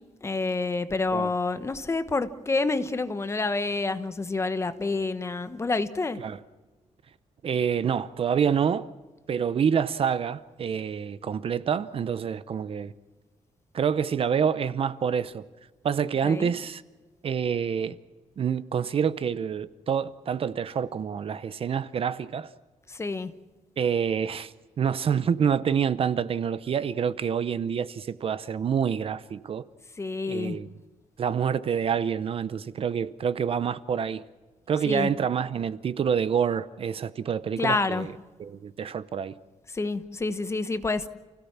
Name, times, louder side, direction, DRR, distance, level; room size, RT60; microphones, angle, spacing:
voice 1, 0.2-6.2 16.2-16.5 22.9-23.3 30.0-30.6 34.9-35.1 37.6-38.1 39.7-41.1, left 3 dB, 20° left, 1.1 m, -28 dB
voice 2, 7.4-8.9 9.3-12.9 13.7-15.4 15.8-16.8 17.2-18.0 18.4-22.5 23.8-29.7 30.3-30.7 31.2-34.2 34.7-38.1 38.4-39.3, right 7 dB, 50° right, 0.7 m, -27 dB
29.0 x 16.5 x 7.3 m
wide cardioid pair, 170°, 13 cm